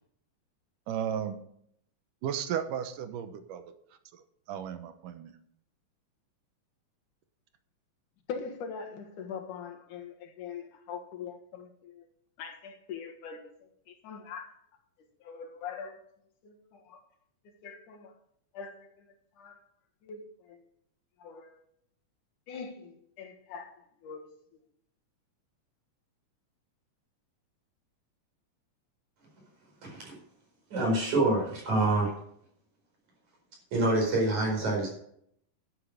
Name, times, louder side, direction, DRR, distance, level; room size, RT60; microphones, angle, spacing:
voice 1, 0.9-1.4 2.2-3.7 4.1-4.2 4.5-5.3, right 9 dB, 90° right, 9 dB, 2.6 m, -34 dB
voice 2, 8.3-12.1 12.4-13.5 13.9-14.6 15.2-16.0 16.4-17.0 17.6-18.1 18.5-19.6 20.0-20.6 21.2-21.6 22.5-24.3 24.5-24.6, left 6 dB, 80° left, 4 dB, 3.1 m, -42 dB
voice 3, 29.8-30.2 30.7-32.1 33.7-34.9, right 2 dB, 65° right, -1 dB, 6.2 m, -26 dB
11.0 x 8.3 x 6.7 m, 0.69 s
omnidirectional pair, 3.6 m